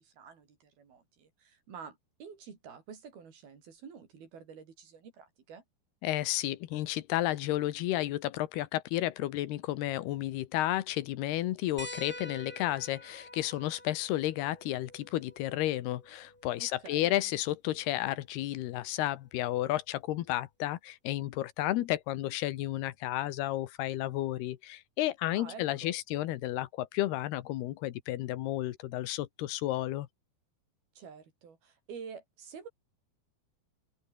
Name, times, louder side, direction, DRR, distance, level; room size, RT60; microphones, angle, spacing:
voice 1, 0.0-5.6 16.6-17.1 25.3-25.9 31.0-32.7, right 6 dB, 75° right, 6.1 m, -49 dB
voice 2, 6.0-30.1, left 15 dB, 85° left, 3.2 m, -32 dB
sound 1, 11.8-16.8 18.4-18.5 20.1-20.2, left 1 dB, 5° left, 1.9 m, -48 dB
open air
omnidirectional pair, 4.5 m